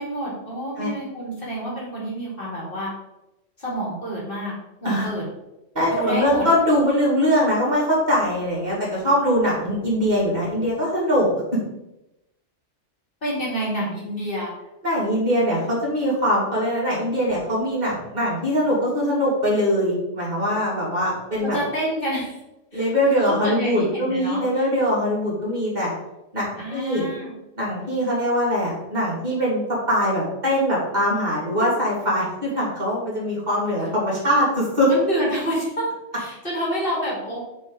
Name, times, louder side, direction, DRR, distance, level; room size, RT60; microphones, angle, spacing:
voice 1, 0.0-2.9 3.6-4.5 4.8-5.2 5.8-6.4 13.2-14.5 21.4-22.4 22.7-24.7 26.6-27.3 34.9-37.4, right 1 dB, 45° left, -5 dB, 2.7 m, -28 dB
voice 2, 5.7-11.6 14.8-21.6 22.7-25.9 26.3-27.0 27.6-34.9, equal, 35° right, -7 dB, 3.0 m, -22 dB
8.7 x 4.7 x 4.0 m, 0.93 s
omnidirectional pair, 1.2 m